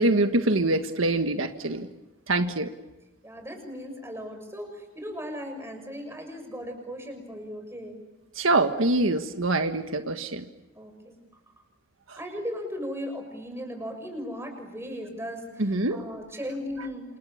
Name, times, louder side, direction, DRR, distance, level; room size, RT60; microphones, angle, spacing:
voice 1, 0.0-1.9 2.3-2.7 8.3-10.5 12.1-12.2 15.6-16.0, right 2 dB, 90° right, 7 dB, 1.6 m, -24 dB
voice 2, 3.2-8.0 10.8-11.2 12.2-17.0, equal, 15° right, 5 dB, 6.3 m, -37 dB
28.5 x 28.0 x 7.4 m, 1.0 s
head